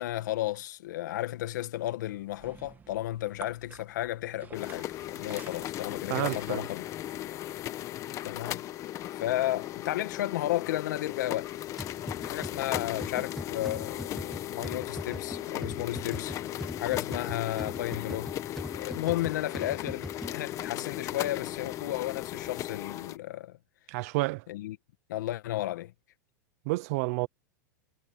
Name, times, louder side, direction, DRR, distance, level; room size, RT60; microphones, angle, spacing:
voice 1, 0.0-6.9 8.2-8.6 9.1-11.5 12.2-23.6 24.5-24.8 25.1-25.9, left 15 dB, 75° left, 1.9 m, -33 dB
sound 1, 2.1-7.2, right 6 dB, 20° right, 1.8 m, -52 dB
sound 2, 4.5-23.2, left 13 dB, 30° left, 1.1 m, -37 dB
voice 2, 6.1-6.6 23.9-24.4 26.7-27.3, right 23 dB, 55° right, 0.8 m, -30 dB
sound 3, 11.8-20.7, left 1 dB, ahead, 1.2 m, -42 dB
supercardioid pair, 140°, 10 cm